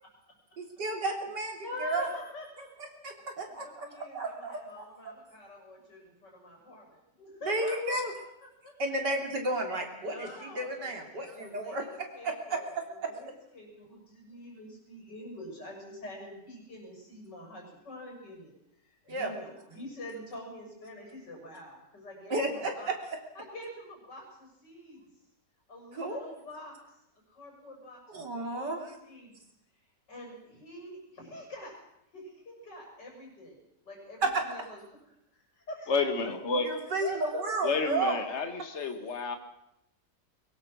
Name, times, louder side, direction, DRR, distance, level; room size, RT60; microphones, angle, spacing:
voice 1, 0.6-2.1 3.0-3.9 4.1-4.8 7.4-8.1 8.8-13.3 19.1-19.3 22.3-22.9 25.9-26.2 28.1-28.9 34.2-34.3 36.6-38.2, right 2 dB, 80° right, 4.2 m, -32 dB
voice 2, 1.6-2.7 3.6-8.0 8.6-8.7 10.0-18.5 18.8-22.9 23.4-25.0 25.7-27.0 27.3-29.5 30.1-31.7 32.1-33.6 33.8-34.8 35.3-36.0 37.0-37.4, left 1 dB, 85° left, 7.6 m, -45 dB
voice 3, 35.9-36.8 37.6-39.4, left 4 dB, 40° left, 2.1 m, -30 dB
23.0 x 22.0 x 6.3 m
omnidirectional pair, 1.8 m